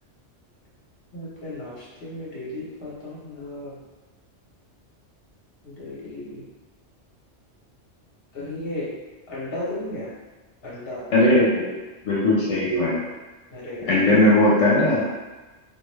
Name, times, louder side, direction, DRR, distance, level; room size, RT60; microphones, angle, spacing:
voice 1, 1.1-3.8 5.6-6.4 8.3-9.0 9.3-10.1 10.6-11.0 13.5-13.9, left 1 dB, 55° left, -7 dB, 1.1 m, -34 dB
voice 2, 11.1-11.7 12.0-13.0 13.8-15.0, left 1 dB, 80° left, -6 dB, 0.9 m, -18 dB
2.5 x 2.3 x 3.1 m, 1.2 s
omnidirectional pair, 1.2 m